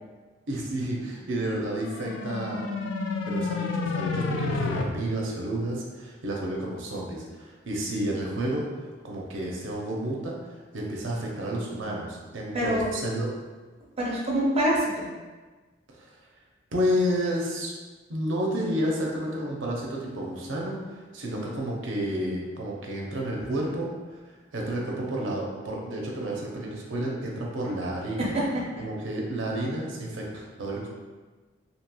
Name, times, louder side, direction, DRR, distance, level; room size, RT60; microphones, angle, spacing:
voice 1, 0.5-2.6 3.2-10.4 10.7-13.3 15.9-16.1 16.7-17.7 18.1-28.3 28.8-30.9, right 1 dB, 75° right, -2 dB, 0.6 m, -31 dB
sound 1, 1.5-4.8, left 4 dB, 65° left, 0.3 m, -30 dB
voice 2, 12.5-12.9 14.0-15.1 28.2-28.8, equal, 30° right, -4 dB, 0.5 m, -26 dB
2.9 x 2.7 x 2.2 m, 1.3 s
head